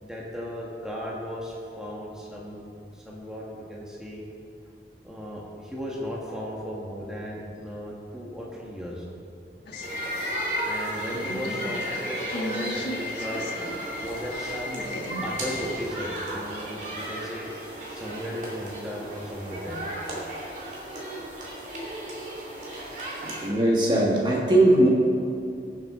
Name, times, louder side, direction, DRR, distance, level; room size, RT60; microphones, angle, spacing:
voice 1, 0.0-2.6 2.9-4.2 5.0-9.0 10.7-13.5 14.0-14.9 15.2-17.5 17.9-19.8, equal, 5° right, -4 dB, 1.4 m, -36 dB
sound 1, 9.7-13.8 14.2-16.0, left 1 dB, 75° left, 1.3 m, -38 dB
sound 2, 9.7-15.7, left 4 dB, 45° left, 0.8 m, -37 dB
sound 3, 9.8-23.5, right 1 dB, 45° right, 2.5 m, -35 dB
voice 2, 23.2-24.9, right 1 dB, 25° right, -3 dB, 1.4 m, -20 dB
20.0 x 7.4 x 3.7 m, 2.6 s
head